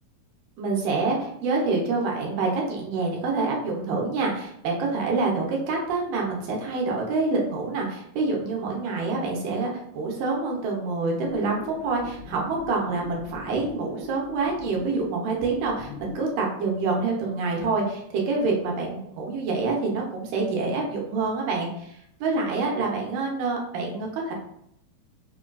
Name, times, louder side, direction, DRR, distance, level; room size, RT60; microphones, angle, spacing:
voice 1, 0.6-24.3, right 3 dB, 90° right, -1 dB, 2.4 m, -27 dB
sound 1, 11.3-16.3, left 2 dB, 85° left, 2.1 m, -40 dB
5.4 x 2.4 x 2.2 m, 0.75 s
omnidirectional pair, 3.7 m